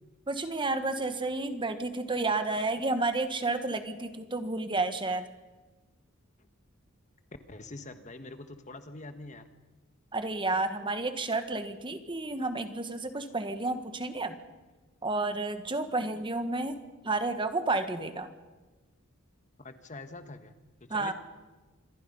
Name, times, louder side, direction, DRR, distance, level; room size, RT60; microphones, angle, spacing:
voice 1, 0.3-5.3 10.1-14.4 15.0-16.8 17.0-18.3 20.9-21.1, right 2 dB, 25° right, 9 dB, 1.4 m, -31 dB
voice 2, 7.5-9.5 19.6-20.5 20.8-21.1, left 2 dB, 35° left, 9 dB, 1.3 m, -44 dB
26.5 x 21.5 x 5.5 m, 1.2 s
head